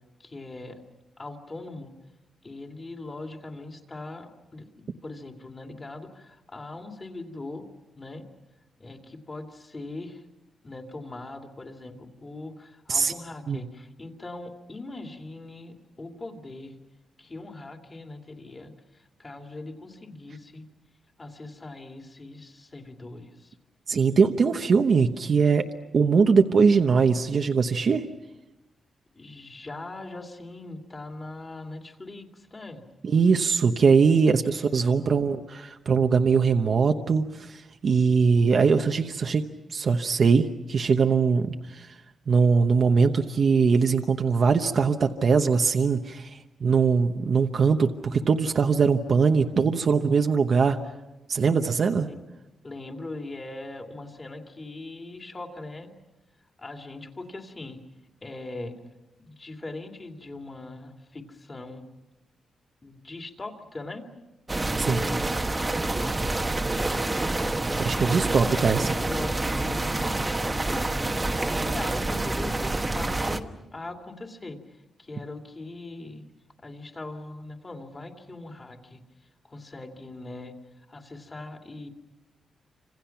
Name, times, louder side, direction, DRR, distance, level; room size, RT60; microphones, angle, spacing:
voice 1, 0.2-0.8 1.2-1.9 2.4-7.7 8.0-8.3 8.8-10.2 10.6-16.8 17.2-20.7 21.2-23.6 29.1-32.8 34.1-35.1 52.1-52.2 52.6-55.9 56.6-57.8 58.2-58.8 59.2-61.8 62.8-64.1 64.9-65.3 65.8-66.5 67.6-68.5 69.1-76.3 76.6-79.0 79.4-81.9, left 2 dB, 25° left, 3 dB, 2.6 m, -41 dB
voice 2, 23.9-25.7 25.9-28.0 33.0-39.4 39.7-42.0 42.3-50.8 51.3-52.1 64.8-65.0 67.8-68.9, right 5 dB, 45° right, 5 dB, 1.0 m, -21 dB
sound 1, 64.5-73.4, right 2 dB, 15° right, 1.2 m, -27 dB
29.5 x 26.5 x 5.9 m, 1.0 s
wide cardioid pair, 145°, 0 cm